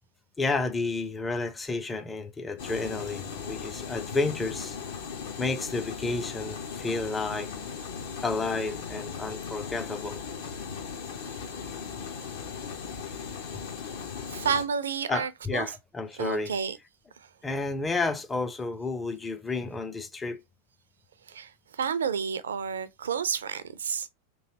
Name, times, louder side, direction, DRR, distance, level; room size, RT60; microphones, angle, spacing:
voice 1, 0.4-4.8 5.4-7.5 8.2-10.2 15.1-16.5 17.4-20.4, left 3 dB, 15° left, 0.4 m, -31 dB
sound 1, 2.6-14.6, left 6 dB, 55° left, 0.7 m, -38 dB
voice 2, 14.3-15.7 16.2-16.8 21.3-21.5 21.8-24.1, right 6 dB, 65° right, 0.4 m, -30 dB
3.1 x 2.5 x 2.8 m
figure-of-eight pair, 90°, 0 cm